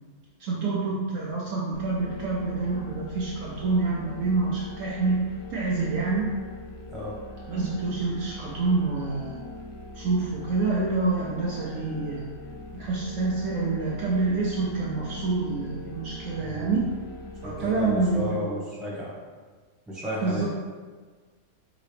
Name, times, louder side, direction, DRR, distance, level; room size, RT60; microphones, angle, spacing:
voice 1, 0.4-5.2 5.5-6.3 7.5-9.4 9.9-12.2 12.7-16.9 17.4-18.5 20.2-20.5, right 3 dB, 70° right, -5 dB, 1.0 m, -27 dB
sound 1, 1.7-18.2, left 2 dB, 85° left, 1.1 m, -42 dB
voice 2, 6.9-7.2 16.4-16.9 17.4-19.1 19.9-20.5, left 1 dB, ahead, -7 dB, 1.1 m, -33 dB
3.9 x 3.7 x 3.3 m, 1.5 s
omnidirectional pair, 1.5 m